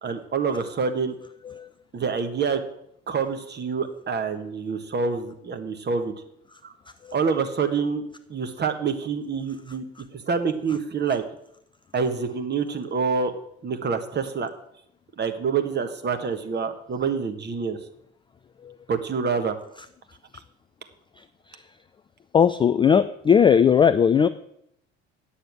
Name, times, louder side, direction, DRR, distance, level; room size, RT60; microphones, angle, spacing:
voice 1, 0.0-1.1 1.9-2.6 3.1-6.1 6.6-6.7 7.1-8.0 8.3-9.9 10.1-11.2 11.9-13.3 13.6-14.5 15.2-17.8 18.9-19.6, right 5 dB, 30° right, 7 dB, 1.4 m, -26 dB
voice 2, 21.2-21.7 22.3-24.3, left 7 dB, 15° left, 12 dB, 0.3 m, -20 dB
9.3 x 6.9 x 7.6 m, 0.73 s
figure-of-eight pair, 55°, 35 cm